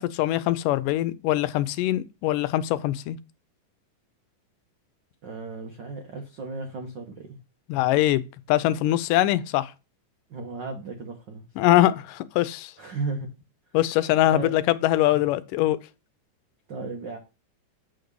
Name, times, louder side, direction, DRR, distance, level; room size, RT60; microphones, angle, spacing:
voice 1, 0.0-3.2 7.7-8.2 8.5-9.7 11.6-12.7 13.7-15.8, left 14 dB, 85° left, 2.2 m, -22 dB
voice 2, 5.2-7.3 10.3-11.4 12.8-13.3 14.3-14.5 16.7-17.2, right 3 dB, 75° right, 1.0 m, -34 dB
8.5 x 3.9 x 6.7 m
omnidirectional pair, 3.7 m